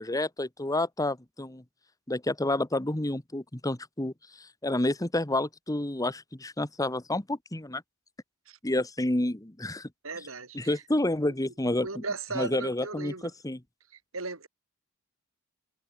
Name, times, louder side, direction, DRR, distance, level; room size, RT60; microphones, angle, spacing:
voice 1, 0.0-1.6 2.1-7.8 8.6-9.9 10.5-12.0 12.3-13.6, left 1 dB, 15° left, 1.4 m, -29 dB
voice 2, 10.0-10.8 11.2-11.3 11.6-13.3 13.9-14.5, right 3 dB, 70° right, 4.8 m, -37 dB
head